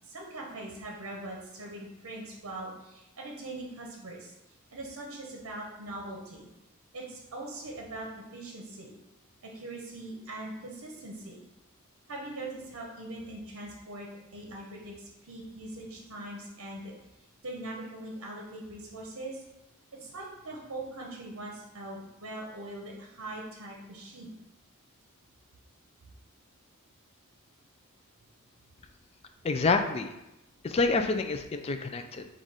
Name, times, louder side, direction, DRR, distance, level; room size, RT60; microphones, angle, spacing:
voice 1, 0.0-4.3 4.7-6.5 6.9-8.9 9.4-11.4 12.1-16.9 17.4-19.4 20.0-24.3, right 2 dB, 65° right, -1 dB, 0.8 m, -41 dB
voice 2, 29.4-30.1 30.6-32.3, left 4 dB, 25° left, 6 dB, 0.3 m, -27 dB
4.1 x 2.5 x 4.7 m, 0.92 s
head